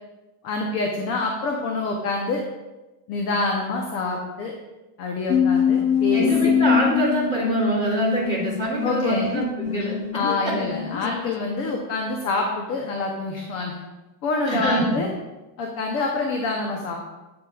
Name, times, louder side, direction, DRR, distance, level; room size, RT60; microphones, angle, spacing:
voice 1, 0.4-2.4 3.1-4.5 5.0-6.5 8.8-9.3 10.1-13.7 14.2-15.1 15.6-17.0, left 3 dB, 30° left, 1 dB, 0.6 m, -26 dB
sound 1, 5.3-12.0, left 8 dB, 75° left, 0.7 m, -24 dB
voice 2, 6.1-10.0 14.4-15.0, right 1 dB, 15° left, -5 dB, 2.0 m, -24 dB
8.6 x 8.2 x 2.3 m, 1.1 s
cardioid pair, 180°, 47 cm